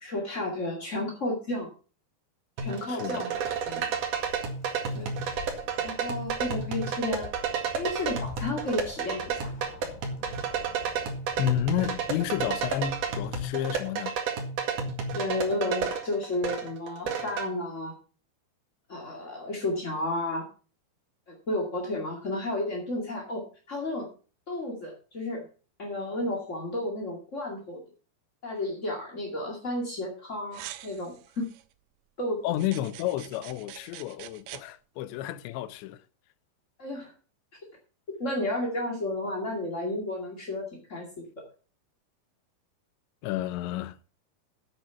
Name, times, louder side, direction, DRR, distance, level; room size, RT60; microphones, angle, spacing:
voice 1, 0.0-1.7 2.6-3.9 4.9-5.1 5.8-7.3 7.8-9.5 15.1-17.9 18.9-20.5 21.3-24.1 24.5-25.4 25.8-27.8 28.4-31.5 32.2-32.5 36.8-37.1 38.2-41.2, left 1 dB, 35° left, 1.1 m, -32 dB
sound 1, 2.6-17.5, right 5 dB, 55° right, 3.0 m, -31 dB
voice 2, 2.9-3.3 11.4-14.2 32.4-36.0 43.2-44.0, left 12 dB, 80° left, 3.0 m, -31 dB
Bird, 3.3-13.5, left 5 dB, 65° left, 4.9 m, -47 dB
sound 2, 30.5-31.6 32.5-34.6, right 14 dB, 85° right, 3.0 m, -45 dB
9.0 x 8.7 x 5.8 m
omnidirectional pair, 5.3 m